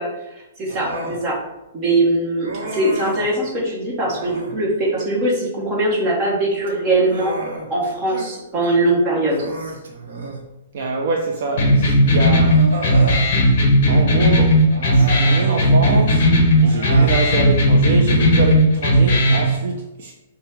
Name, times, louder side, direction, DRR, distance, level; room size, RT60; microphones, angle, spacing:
voice 1, 0.0-1.4 1.7-7.3 7.7-9.5, right 2 dB, 20° right, 1.0 m, -21 dB
Human voice, 0.7-1.2 2.4-3.3 4.0-4.6 6.5-8.3 8.6-8.8 9.2-10.5 11.7-11.8 12.4-13.3 14.7-15.5 16.5-17.2, right 1 dB, 70° right, 0.9 m, -31 dB
voice 2, 10.7-12.7 13.9-14.6 14.9-16.3 16.6-20.1, right 3 dB, 45° right, 0.5 m, -25 dB
sound 1, 11.6-19.5, equal, 40° left, 1.1 m, -15 dB
5.4 x 2.2 x 4.4 m
hypercardioid pair, 180°, 0 cm